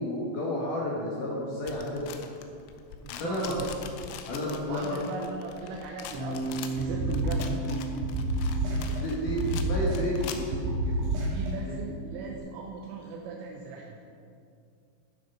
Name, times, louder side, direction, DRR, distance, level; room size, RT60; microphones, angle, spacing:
voice 1, 0.0-2.1 3.1-3.5 4.3-5.1 8.9-10.9 11.6-11.8, left 1 dB, 65° left, -4 dB, 2.1 m, -31 dB
sound 1, 1.7-10.7, left 7 dB, 85° left, 3.2 m, -43 dB
voice 2, 2.9-3.7 4.1-4.2 4.7-7.9 11.3-14.0, right 4 dB, 90° right, -1 dB, 3.4 m, -38 dB
Bass guitar, 6.1-12.4, right 2 dB, 45° right, 3.3 m, -38 dB
sound 2, 6.8-7.7 8.0-9.0 9.3-10.2 10.5-11.5, right 1 dB, 70° right, 4.2 m, -29 dB
12.5 x 7.4 x 5.6 m, 2.4 s
omnidirectional pair, 5.7 m